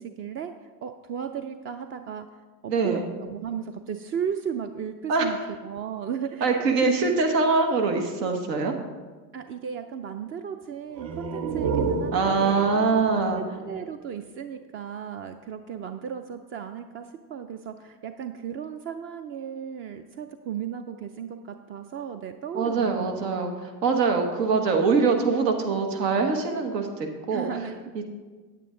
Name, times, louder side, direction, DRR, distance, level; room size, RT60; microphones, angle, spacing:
voice 1, 0.0-2.3 2.6-5.4 5.6-6.9 9.3-12.7 13.3-23.3 27.3-27.7, right 8 dB, 30° right, 7 dB, 0.4 m, -35 dB
voice 2, 2.7-3.1 5.1-5.5 6.4-8.7 12.1-13.4 22.5-27.5 27.9-28.0, right 4 dB, 85° right, 3 dB, 1.4 m, -23 dB
sound 1, 10.9-14.5, right 5 dB, 60° right, 1.1 m, -31 dB
9.0 x 9.0 x 3.8 m, 1.4 s
hypercardioid pair, 85°, 48 cm